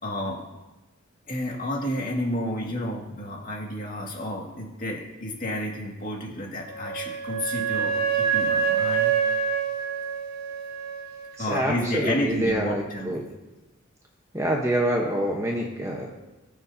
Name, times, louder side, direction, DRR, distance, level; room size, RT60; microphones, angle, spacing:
voice 1, 0.0-0.4 1.3-9.1 11.4-13.2, left 1 dB, 40° left, -1 dB, 2.1 m, -31 dB
Wind instrument woodwind instrument, 6.6-11.3, right 6 dB, 45° right, 1.4 m, -26 dB
voice 2, 11.4-13.2 14.3-16.1, right 1 dB, 15° right, 0 dB, 1.0 m, -26 dB
21.5 x 7.3 x 2.8 m, 1.1 s
head